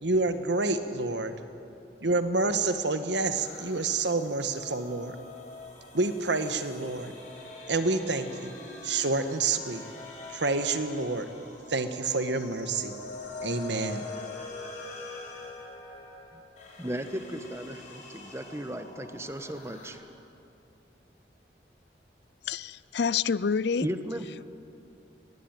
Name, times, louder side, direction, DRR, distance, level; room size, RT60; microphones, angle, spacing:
voice 1, 0.0-1.3 2.0-5.2 5.9-7.1 7.7-8.5 8.8-9.8 10.3-11.3 11.7-12.9 13.4-14.0, right 3 dB, 80° right, 9 dB, 1.5 m, -28 dB
sound 1, 3.3-19.9, left 2 dB, 45° left, 4.5 m, -44 dB
voice 2, 16.8-20.0 23.8-24.3, equal, 15° right, 9 dB, 1.1 m, -35 dB
voice 3, 22.5-23.9, left 6 dB, 70° left, 19 dB, 0.5 m, -27 dB
22.5 x 19.5 x 9.1 m, 2.7 s
head